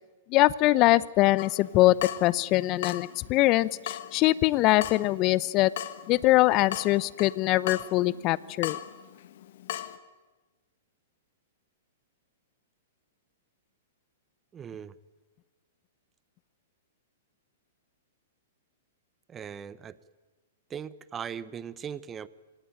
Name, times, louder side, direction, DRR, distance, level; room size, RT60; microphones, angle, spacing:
voice 1, 0.3-1.9 2.2-5.7 6.1-8.8, left 18 dB, 40° left, 20 dB, 0.8 m, -23 dB
Water tap faucet / Drip, 1.4-10.0, left 12 dB, 60° left, 1.3 m, -40 dB
voice 2, 14.5-14.9 19.3-20.0 20.7-22.3, right 8 dB, 20° right, 18 dB, 0.9 m, -39 dB
26.0 x 18.0 x 9.1 m, 1.3 s
hypercardioid pair, 115°, 0 cm